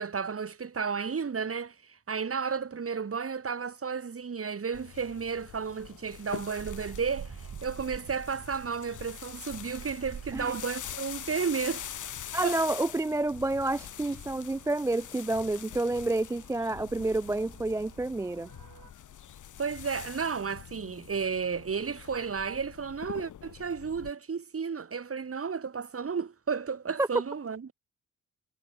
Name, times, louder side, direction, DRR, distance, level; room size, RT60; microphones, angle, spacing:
voice 1, 0.0-11.8 12.4-12.6 19.6-27.7, right 6 dB, 45° right, 3.8 m, -33 dB
sound 1, 4.7-24.1, left 10 dB, 70° left, 2.9 m, -44 dB
sound 2, 6.6-18.9, right 8 dB, 60° right, 4.1 m, -49 dB
voice 2, 12.3-18.5 27.0-27.1, right 2 dB, 10° right, 0.3 m, -29 dB
supercardioid pair, 60°, 32 cm